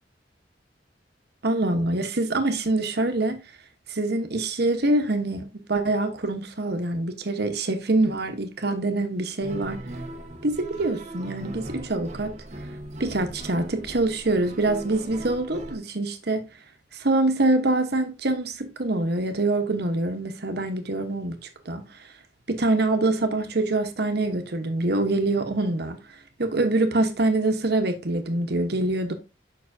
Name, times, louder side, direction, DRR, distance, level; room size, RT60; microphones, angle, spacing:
voice 1, 1.4-3.4 3.9-9.8 10.4-12.4 13.0-16.4 17.0-21.4 21.7-21.8 22.5-26.0 26.4-29.1, right 2 dB, 60° right, 1.1 m, -25 dB
sound 1, 9.4-15.8, right 1 dB, 40° right, 0.9 m, -39 dB
7.3 x 5.8 x 2.7 m
head